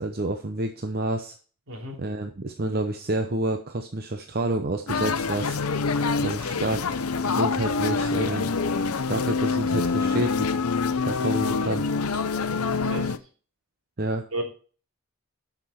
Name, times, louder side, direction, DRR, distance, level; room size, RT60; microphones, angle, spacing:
voice 1, 0.0-1.3 2.0-5.6 6.2-7.0 7.2-8.6 9.1-10.5 10.7-11.9 14.0-14.2, right 1 dB, 45° right, 5 dB, 0.8 m, -29 dB
voice 2, 1.7-2.0 12.8-13.1 14.3-14.4, right 1 dB, 70° right, 1 dB, 3.2 m, -32 dB
sound 1, 4.9-13.2, left 4 dB, 90° left, 0.7 m, -26 dB
11.5 x 6.0 x 4.3 m, 0.39 s
head